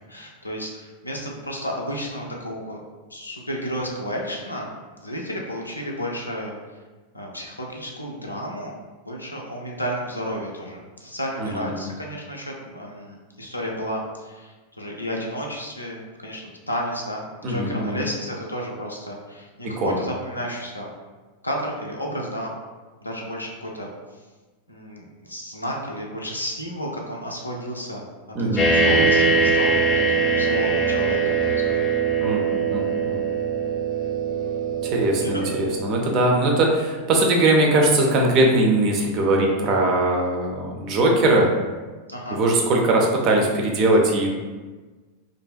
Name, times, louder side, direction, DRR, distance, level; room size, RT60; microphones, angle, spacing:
voice 1, 0.1-2.8 3.1-4.7 5.0-6.6 7.1-8.8 9.0-20.9 21.4-22.5 23.0-23.9 24.7-28.0 28.3-31.8 35.2-35.7 42.1-42.4, equal, 85° left, -1 dB, 0.4 m, -32 dB
voice 2, 11.4-11.9 17.4-18.0 19.6-20.0 28.4-29.1 32.2-33.3 34.8-41.5 42.3-44.3, right 2 dB, 35° right, 0 dB, 0.4 m, -21 dB
sound 1, 28.6-36.0, right 4 dB, 20° left, 0.6 m, -22 dB
2.5 x 2.1 x 2.3 m, 1.3 s
figure-of-eight pair, 90°, 0 cm